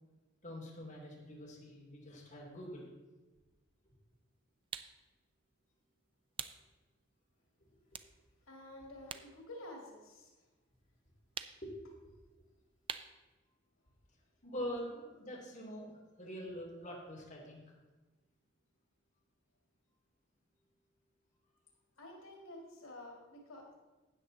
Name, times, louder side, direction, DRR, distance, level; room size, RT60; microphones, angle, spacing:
voice 1, 0.4-2.9 11.6-11.7 14.4-15.9 16.2-17.6, equal, 40° left, -3 dB, 2.9 m, -44 dB
sound 1, 4.7-5.0 6.4-6.6 7.1-7.3 7.9-9.3 9.6-10.7 11.3-11.8 12.9-13.2, right 7 dB, 25° right, 0.4 m, -44 dB
voice 2, 8.5-10.3 22.0-23.7, left 1 dB, 90° left, 0 dB, 2.2 m, -50 dB
13.0 x 8.7 x 4.0 m, 1.2 s
head